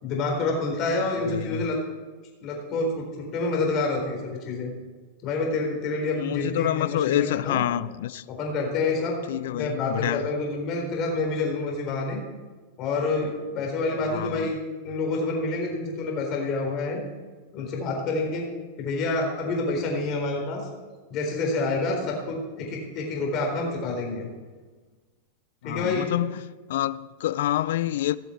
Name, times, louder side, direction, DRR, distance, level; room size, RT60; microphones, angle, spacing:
voice 1, 0.0-1.8 2.4-4.7 5.2-7.6 8.3-9.2 9.5-12.2 12.8-14.6 14.8-17.0 17.5-18.5 18.8-20.7 21.1-24.3 25.6-26.1, left 3 dB, 40° left, 4.1 m, -28 dB
voice 2, 1.2-1.7 6.1-8.2 9.3-10.3 14.1-14.5 25.6-26.4 26.7-28.2, left 13 dB, 75° left, 0.4 m, -27 dB
18.5 x 7.0 x 4.6 m
hypercardioid pair, 125°, 0 cm